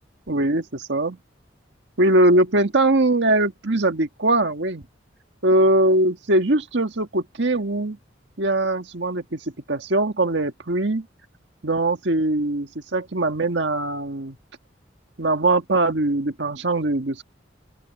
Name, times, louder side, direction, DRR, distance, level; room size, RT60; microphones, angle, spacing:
voice 1, 0.3-1.2 2.0-4.8 5.4-8.0 8.4-9.4 9.7-11.1 11.6-14.4 15.2-17.2, right 2 dB, 70° right, 1.6 m, -21 dB
open air
head